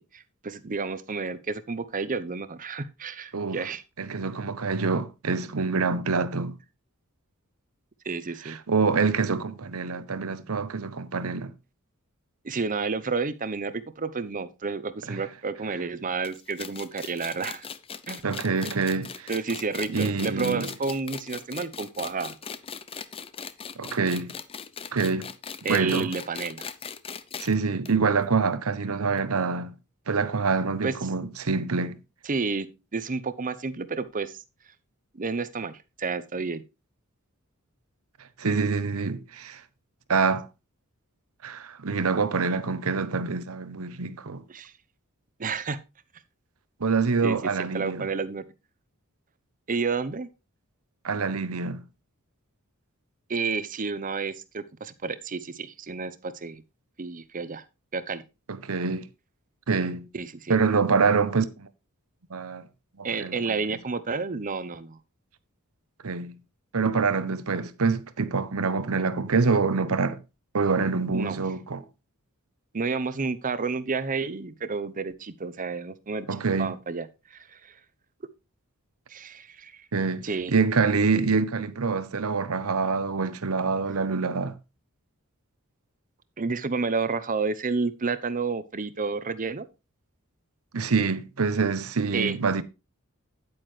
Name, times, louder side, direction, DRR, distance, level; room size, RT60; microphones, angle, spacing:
voice 1, 0.0-3.8 8.0-8.6 12.4-17.7 18.1-18.2 18.6-18.7 19.3-22.4 25.6-26.7 30.8-30.9 32.2-32.7 32.9-34.4 35.1-36.6 44.5-44.7 45.4-45.8 47.2-48.4 49.7-50.3 53.3-56.6 57.0-57.6 57.9-58.2 60.1-60.6 63.0-65.0 71.1-71.4 72.7-76.3 76.6-77.8 79.1-79.9 80.2-80.5 86.4-89.7 92.1-92.4, right 4 dB, 40° right, 0.7 m, -30 dB
voice 2, 4.0-6.6 8.4-11.5 15.1-15.2 18.2-19.3 19.9-20.7 23.8-24.3 24.9-25.3 25.7-26.1 27.4-29.7 30.1-32.0 38.4-39.6 40.1-40.5 41.4-44.4 46.8-48.1 51.0-51.8 58.5-59.1 59.7-60.1 60.5-61.7 62.3-62.7 63.0-63.6 66.0-66.4 66.7-70.2 70.5-71.9 76.3-76.7 79.9-84.6 90.7-92.6, right 4 dB, 70° right, 0.8 m, -26 dB
sound 1, 16.2-27.5 27.8-27.9 28.2-28.3 29.2-29.3, left 6 dB, 25° left, 0.5 m, -39 dB
9.6 x 8.8 x 3.2 m
head